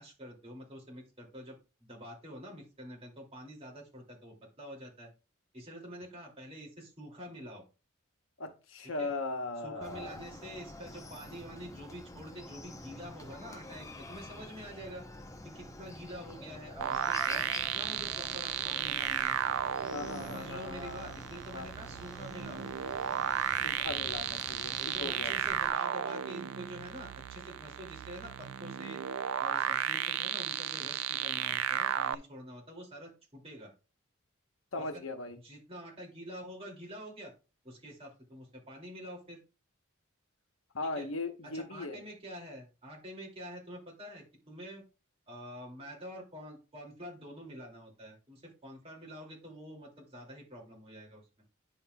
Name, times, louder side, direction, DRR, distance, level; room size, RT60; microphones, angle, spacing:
voice 1, 0.0-5.1 5.5-7.6 9.0-9.1 9.6-15.0 15.4-17.5 17.7-19.4 20.2-22.7 24.8-29.0 29.4-33.7 34.8-35.0 35.4-37.3 37.6-39.4 41.0-41.1 41.5-44.8 45.3-51.2, equal, 30° right, 2.5 m, -47 dB
voice 2, 8.4-10.2 19.9-21.2 21.5-21.7 23.6-25.3 34.7-35.4 40.7-42.0, left 3 dB, 70° left, 1.0 m, -38 dB
Chicken rooster, 9.8-25.7, left 2 dB, 15° left, 0.7 m, -48 dB
sound 1, 16.8-32.2, right 10 dB, 75° right, 0.4 m, -34 dB
10.0 x 5.7 x 2.3 m
head